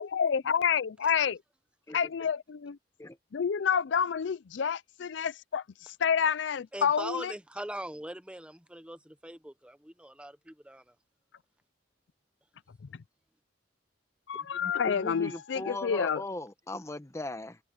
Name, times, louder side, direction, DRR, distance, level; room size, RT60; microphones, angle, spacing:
voice 1, 0.0-1.4 1.9-2.8 3.3-7.3 14.3-16.2, left 7 dB, 75° left, 0.4 m, -29 dB
voice 2, 6.7-10.9, right 1 dB, 5° right, 1.0 m, -41 dB
voice 3, 14.3-17.6, left 2 dB, 15° left, 1.1 m, -39 dB
head